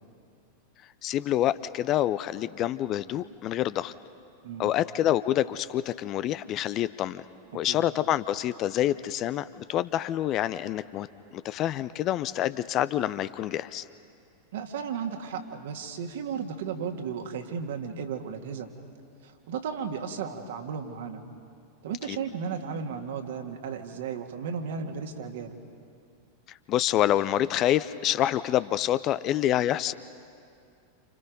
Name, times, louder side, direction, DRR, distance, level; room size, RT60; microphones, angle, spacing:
voice 1, 1.0-3.9 4.6-7.2 7.5-11.1 11.3-13.8 22.1-22.2 26.5-29.9, left 12 dB, 35° left, 15 dB, 0.5 m, -27 dB
voice 2, 7.5-7.9 14.5-18.7 19.2-21.2 21.8-25.6, right 6 dB, 55° right, 5 dB, 2.0 m, -34 dB
29.0 x 29.0 x 5.3 m, 2.4 s
figure-of-eight pair, 90°, 0 cm